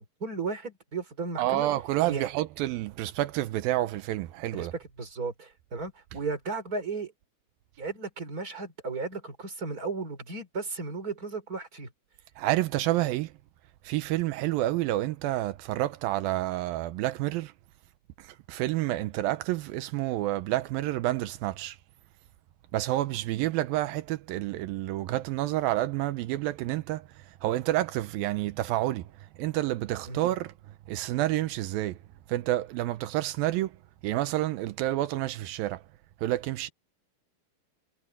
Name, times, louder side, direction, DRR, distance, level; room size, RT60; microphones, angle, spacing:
voice 1, 0.0-1.7 2.1-2.3 4.5-7.1 7.8-11.9 30.1-30.2, right 4 dB, 25° right, 4.4 m, -35 dB
voice 2, 1.4-4.7 12.4-13.3 13.9-17.5 18.5-21.8 22.7-27.0 27.4-29.0 29.4-30.5 30.9-32.0 32.3-33.7 34.0-35.8 36.2-36.7, right 15 dB, 85° right, 2.5 m, -29 dB
omnidirectional pair, 4.2 m